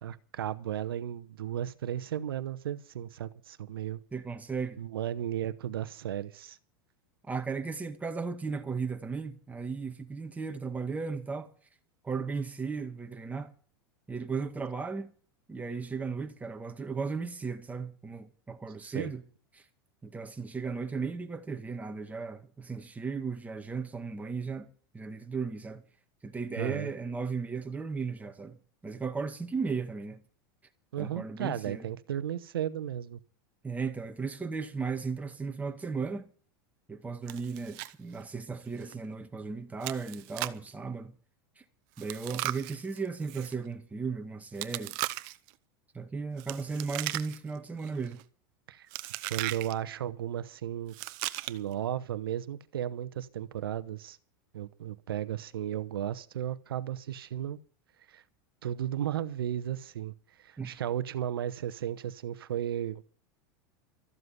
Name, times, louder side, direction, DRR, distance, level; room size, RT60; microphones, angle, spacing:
voice 1, 0.0-4.0 4.8-6.6 18.8-19.1 26.6-26.9 30.9-33.2 48.7-48.9 49.3-51.0 51.5-54.2 54.5-57.6 58.1-58.2 58.6-60.1 60.4-63.0, right 11 dB, 90° right, 1.0 m, -34 dB
voice 2, 4.1-4.8 7.3-11.5 12.0-13.5 14.1-15.1 15.5-19.2 19.5-19.6 20.0-24.7 24.9-25.8 26.2-28.6 28.8-30.2 31.0-31.9 33.6-36.2 36.9-41.1 41.6-41.7 42.0-45.0 45.9-48.2 60.6-60.7, right 5 dB, 10° right, 2.0 m, -36 dB
Chewing mastication, 37.3-37.9 38.2-38.3 38.8-38.9 39.8-40.7 42.0-43.5 44.6-45.5 46.4-47.6 47.8-48.2 48.9-49.7 50.9-51.7, right 20 dB, 60° right, 0.9 m, -37 dB
14.0 x 7.8 x 9.5 m
hypercardioid pair, 110°, 12 cm